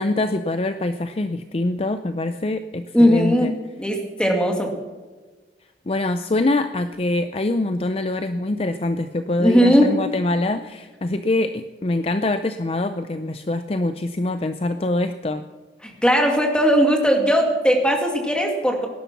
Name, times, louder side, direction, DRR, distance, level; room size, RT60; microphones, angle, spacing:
voice 1, 0.0-3.5 5.9-15.5, left 2 dB, 35° left, 9 dB, 0.5 m, -24 dB
voice 2, 2.9-3.5 3.8-4.7 9.4-9.9 15.8-18.9, equal, 5° left, 2 dB, 2.2 m, -18 dB
18.0 x 11.0 x 6.0 m, 1.3 s
head